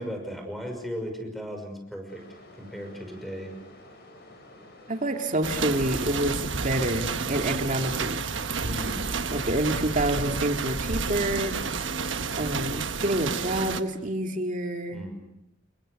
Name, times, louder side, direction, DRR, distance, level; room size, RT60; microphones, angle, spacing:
voice 1, 0.0-2.3 2.5-3.5 8.6-9.0 14.9-15.2, equal, ahead, 5 dB, 5.8 m, -36 dB
sound 1, 2.1-13.4, left 1 dB, 55° left, 7.0 m, -50 dB
voice 2, 4.9-8.2 9.3-11.6 12.4-15.0, right 1 dB, 40° right, 4 dB, 2.4 m, -28 dB
sound 2, 5.4-13.8, right 5 dB, 75° right, 1.3 m, -30 dB
28.5 x 22.5 x 6.5 m, 0.82 s
head